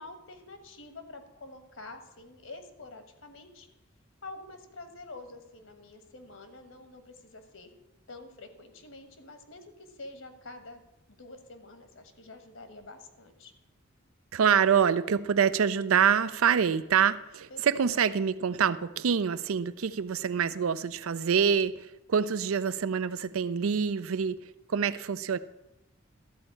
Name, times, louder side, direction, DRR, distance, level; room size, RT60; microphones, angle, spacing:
voice 1, 0.0-3.7 4.2-7.7 8.1-10.8 11.1-13.5 17.5-18.1, left 2 dB, 70° left, 1.3 m, -47 dB
voice 2, 14.3-25.4, right 7 dB, 85° right, 0.5 m, -26 dB
13.0 x 4.4 x 8.3 m
head